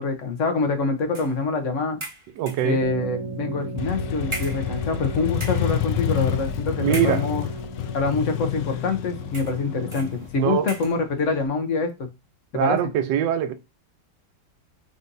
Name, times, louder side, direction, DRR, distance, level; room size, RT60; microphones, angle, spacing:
voice 1, 0.0-2.0 2.6-7.4 7.9-12.1 12.5-12.8, left 4 dB, 55° left, 1.0 m, -25 dB
sound 1, 1.1-1.4 2.0-2.8 3.6-3.7 4.3-5.1 5.3-5.8 6.9-7.6 8.4-8.5 9.3-9.6 9.9-10.2 10.7-11.0, right 1 dB, 25° right, 0.7 m, -37 dB
voice 2, 2.4-2.8 6.8-7.3 10.4-10.7 12.5-13.5, right 9 dB, 90° right, 1.3 m, -23 dB
sound 2, 2.8-10.3, right 3 dB, 65° right, 0.9 m, -36 dB
Motorcycle, 3.8-11.4, left 10 dB, 85° left, 1.2 m, -28 dB
4.1 x 3.8 x 2.6 m
omnidirectional pair, 1.9 m